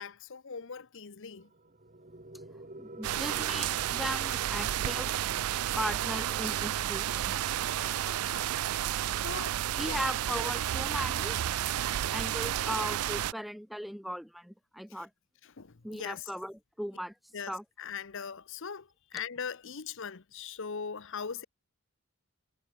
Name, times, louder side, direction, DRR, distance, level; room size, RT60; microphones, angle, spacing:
voice 1, 0.0-1.5 7.7-8.7 9.1-10.1 14.9-15.0 15.4-16.3 17.3-21.4, left 6 dB, 60° left, 0.9 m, -41 dB
sound 1, 1.3-12.3, right 2 dB, 35° right, 2.5 m, -51 dB
voice 2, 2.8-5.1 5.8-7.4 9.8-11.4 12.1-15.1 15.8-17.1 17.5-17.6, equal, ahead, 0.4 m, -37 dB
sound 2, 3.0-13.3, right 11 dB, 80° right, 0.4 m, -31 dB
head